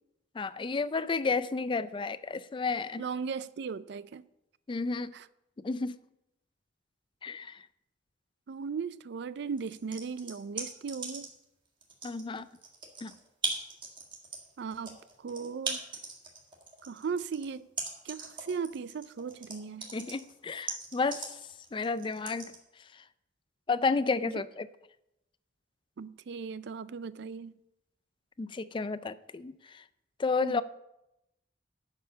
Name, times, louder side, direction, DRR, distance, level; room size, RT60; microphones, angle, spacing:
voice 1, 0.4-3.0 4.7-5.1 5.6-6.0 7.2-7.6 12.0-12.5 13.0-13.1 19.9-21.3 21.7-22.5 23.7-24.7 28.4-29.8 30.2-30.6, left 4 dB, 25° left, 0.4 m, -31 dB
voice 2, 3.0-4.2 5.1-5.2 8.5-11.3 14.6-15.0 15.2-15.8 16.9-17.7 18.1-19.8 26.0-27.5 30.4-30.6, right 5 dB, 65° right, 0.4 m, -37 dB
sound 1, 9.6-11.4 11.8-22.6, right 3 dB, 25° right, 1.8 m, -38 dB
11.0 x 5.6 x 6.6 m
head